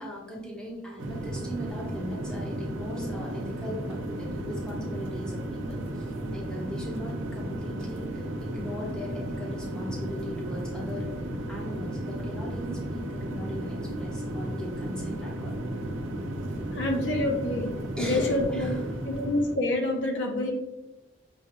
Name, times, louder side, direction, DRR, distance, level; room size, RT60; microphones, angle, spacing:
voice 1, 0.0-15.6 18.0-18.8, left 1 dB, 5° left, -5 dB, 0.9 m, -40 dB
sound 1, 1.0-19.6, right 1 dB, 90° right, 0.6 m, -34 dB
voice 2, 16.7-17.7 18.0-18.7 19.1-20.5, left 1 dB, 70° left, 1 dB, 0.7 m, -27 dB
6.2 x 2.3 x 3.0 m, 1.1 s
head